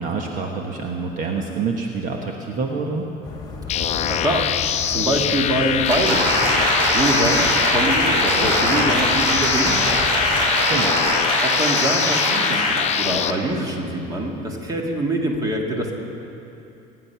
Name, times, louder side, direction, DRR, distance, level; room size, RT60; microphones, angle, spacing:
voice 1, 0.0-3.0 10.5-11.0, right 4 dB, 45° right, 2 dB, 1.2 m, -27 dB
sound 1, 3.2-10.5, left 3 dB, 20° left, 1.8 m, -35 dB
sound 2, 3.7-13.3, left 9 dB, 40° left, 0.6 m, -23 dB
voice 2, 4.1-4.5 4.9-6.3 6.9-10.0 11.4-15.9, right 1 dB, 20° right, 1 dB, 1.9 m, -24 dB
Applause, 5.9-13.0 13.4-13.5, right 1 dB, 85° right, 3.9 m, -22 dB
22.5 x 9.8 x 5.8 m, 2.9 s
cardioid pair, 135°, 18 cm